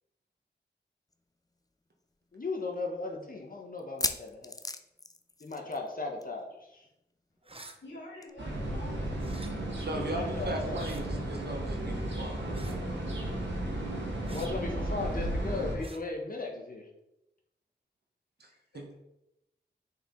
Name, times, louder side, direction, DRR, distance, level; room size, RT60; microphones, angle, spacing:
sound 1, 1.1-1.2 1.5-1.6 2.2-2.3 3.8-5.9 6.2-6.4 6.7-6.8 8.2-8.3, left 2 dB, 20° left, 0.5 m, -36 dB
voice 1, 2.3-4.5 5.4-6.5 9.7-11.0 14.3-16.8, left 3 dB, 50° left, 1 dB, 1.3 m, -37 dB
sound 2, 7.4-7.8 9.2-9.5 10.7-11.0 12.5-12.8 14.2-14.5 15.8-16.0, right 2 dB, 30° right, 0.8 m, -49 dB
voice 2, 7.8-9.2 18.5-19.0, left 1 dB, 75° left, -5 dB, 2.0 m, -48 dB
sound 3, 8.4-15.8, right 1 dB, 85° right, 1.9 m, -34 dB
voice 3, 9.7-12.8 18.7-19.0, right 1 dB, 60° right, 2 dB, 1.2 m, -38 dB
6.5 x 4.9 x 3.9 m, 0.87 s
cardioid pair, 50°, 19 cm